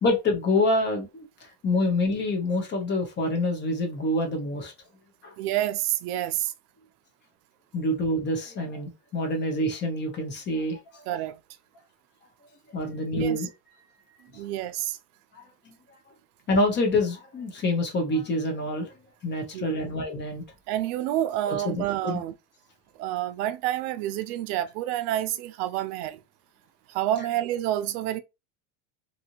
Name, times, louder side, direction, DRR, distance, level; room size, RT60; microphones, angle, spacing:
voice 1, 0.0-1.3 1.6-4.7 5.2-5.3 7.7-10.8 12.7-13.5 15.3-15.4 16.5-18.9 19.2-20.4 21.5-22.2, left 1 dB, 25° left, 0.7 m, -26 dB
voice 2, 5.4-6.5 11.1-11.4 13.1-13.5 14.3-15.0 19.5-19.8 20.7-22.3 23.0-26.2 26.9-28.2, right 13 dB, 75° right, 0.6 m, -28 dB
2.7 x 2.5 x 2.8 m
supercardioid pair, 145°, 46 cm